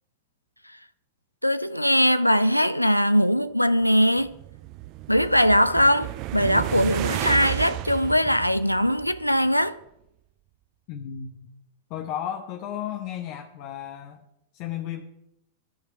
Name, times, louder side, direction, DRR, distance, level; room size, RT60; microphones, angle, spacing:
voice 1, 1.4-4.3 5.1-9.7, equal, 90° left, 0.4 m, -21 dB
sound 1, 4.0-9.5, right 17 dB, 40° right, 0.4 m, -32 dB
voice 2, 10.9-11.5 11.9-14.2 14.5-15.0, left 10 dB, 45° left, 1.0 m, -34 dB
14.0 x 5.0 x 9.1 m
figure-of-eight pair, 90°, 0 cm